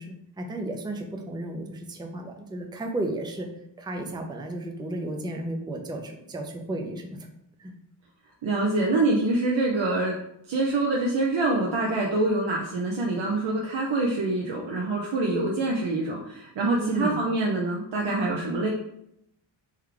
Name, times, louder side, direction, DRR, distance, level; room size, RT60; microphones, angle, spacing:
voice 1, 0.0-3.5 3.8-7.3 7.6-7.7 16.8-17.2, right 2 dB, 10° right, 3 dB, 0.5 m, -33 dB
voice 2, 8.4-10.2 10.5-18.7, right 2 dB, 60° right, -2 dB, 0.8 m, -25 dB
3.3 x 3.2 x 3.7 m, 0.78 s
cardioid pair, 80°, 50 cm